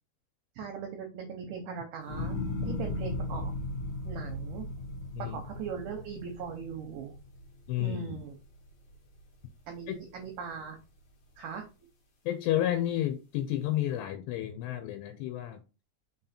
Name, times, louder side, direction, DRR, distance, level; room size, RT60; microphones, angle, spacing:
voice 1, 0.6-2.4 2.6-3.5 4.0-4.7 5.2-7.1 7.8-8.4 9.7-10.8 11.4-11.7, right 6 dB, 80° right, 1.9 m, -39 dB
sound 1, 2.1-8.4 8.8-9.4, left 2 dB, 50° left, 2.1 m, -37 dB
voice 2, 7.7-8.2 9.9-10.0 12.3-15.6, left 12 dB, 85° left, 2.9 m, -31 dB
6.0 x 4.0 x 4.3 m
omnidirectional pair, 4.9 m